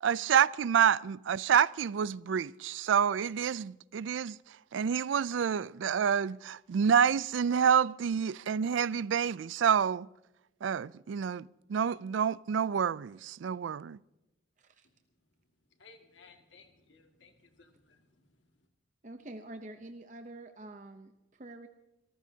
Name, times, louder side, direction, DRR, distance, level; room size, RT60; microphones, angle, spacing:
voice 1, 0.0-4.4 4.7-10.1 10.6-14.0, right 7 dB, 85° right, 0.4 m, -28 dB
voice 2, 15.8-18.3, left 4 dB, 85° left, 2.1 m, -59 dB
voice 3, 19.0-21.7, right 2 dB, 40° right, 0.7 m, -47 dB
25.5 x 14.0 x 2.8 m
head